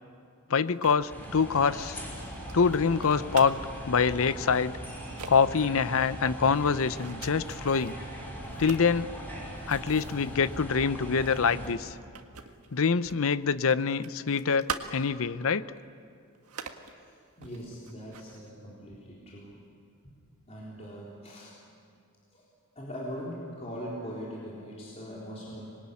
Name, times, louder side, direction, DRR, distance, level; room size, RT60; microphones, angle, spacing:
voice 1, 0.5-2.0 2.5-3.6 3.8-4.7 5.3-8.0 8.6-9.1 9.7-12.0 12.7-15.7, left 5 dB, 65° left, 15 dB, 0.7 m, -25 dB
sound 1, 0.6-3.8 4.5-4.7 5.0-5.3 5.8-7.9 8.4-13.3 13.6-15.3 15.7-15.8 16.3-16.9 17.4-18.5, right 6 dB, 80° right, 1.6 m, -43 dB
sound 2, 1.1-11.7, equal, 10° left, 5.5 m, -40 dB
voice 2, 17.4-19.6 20.5-21.6 22.3-22.4 22.8-25.7, equal, 30° left, -5 dB, 3.9 m, -41 dB
25.5 x 21.5 x 9.8 m, 2.4 s
head